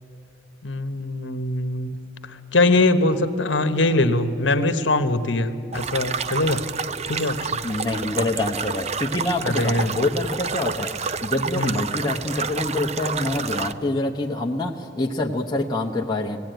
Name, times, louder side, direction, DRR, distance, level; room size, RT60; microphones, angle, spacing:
voice 1, 0.6-1.9 2.5-6.6 7.1-7.4 9.4-9.9 11.5-11.8, left 2 dB, 65° left, 10 dB, 1.2 m, -22 dB
sound 1, 5.7-13.7, right 5 dB, 35° right, 0.5 m, -29 dB
voice 2, 7.6-10.9 11.2-16.4, left 2 dB, 20° left, -1 dB, 0.9 m, -26 dB
20.0 x 16.0 x 9.2 m, 2.8 s
head